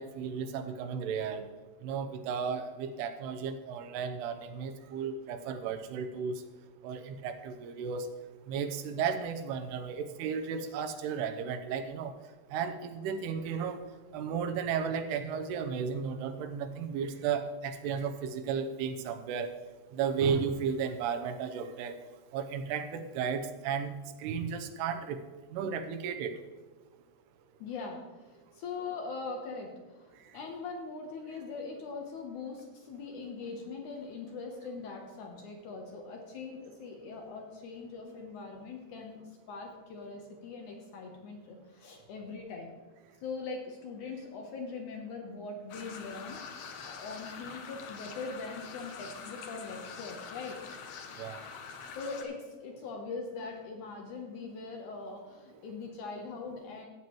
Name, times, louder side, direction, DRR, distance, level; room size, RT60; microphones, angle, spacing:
voice 1, 0.0-1.5 1.8-6.4 6.8-8.1 8.5-12.1 12.5-13.8 14.1-19.5 19.9-22.0 22.3-23.9 24.2-25.2 25.5-26.4 51.2-51.4, right 6 dB, 85° right, 9 dB, 2.8 m, -34 dB
voice 2, 27.6-42.7 43.2-50.6 51.9-56.9, left 4 dB, 70° left, 2 dB, 1.9 m, -41 dB
sound 1, 45.7-52.2, left 6 dB, 90° left, 1.6 m, -45 dB
14.5 x 8.8 x 3.0 m, 1.2 s
omnidirectional pair, 4.6 m